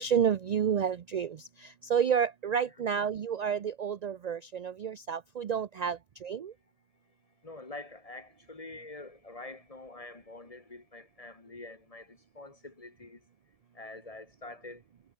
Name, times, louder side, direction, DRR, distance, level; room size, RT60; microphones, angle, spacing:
voice 1, 0.0-1.4 1.6-6.5, right 7 dB, 60° right, 0.4 m, -30 dB
voice 2, 2.6-3.1 7.4-13.2 13.7-14.8, left 2 dB, 30° left, 1.9 m, -46 dB
omnidirectional pair, 1.3 m